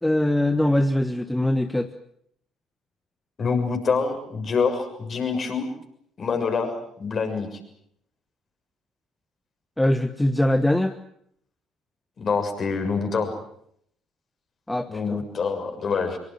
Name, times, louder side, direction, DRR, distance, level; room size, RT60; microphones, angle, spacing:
voice 1, 0.0-1.9 9.8-10.9 14.7-15.2, left 1 dB, 10° left, 10 dB, 1.4 m, -22 dB
voice 2, 3.4-5.7 6.2-6.7 7.0-7.6 12.2-13.3 14.9-16.2, left 5 dB, 40° left, 5 dB, 6.7 m, -25 dB
25.5 x 23.0 x 7.7 m, 0.69 s
figure-of-eight pair, 50°, 0 cm